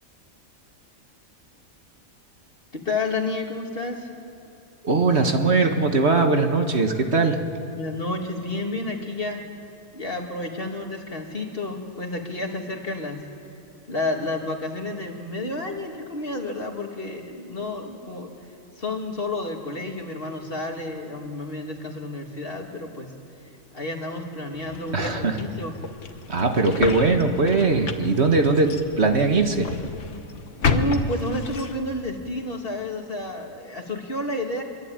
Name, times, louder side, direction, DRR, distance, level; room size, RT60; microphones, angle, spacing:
voice 1, 2.7-4.1 7.3-7.4 7.7-9.4 9.9-13.2 13.9-18.3 18.8-23.1 23.7-25.7 30.6-34.6, left 2 dB, 45° left, 2 dB, 2.6 m, -30 dB
voice 2, 4.8-7.4 24.9-25.4 26.3-29.7, right 3 dB, 50° right, 5 dB, 1.8 m, -20 dB
sound 1, 24.5-32.0, left 4 dB, 65° left, 1.6 m, -31 dB
25.5 x 23.5 x 9.0 m, 2.8 s
omnidirectional pair, 1.4 m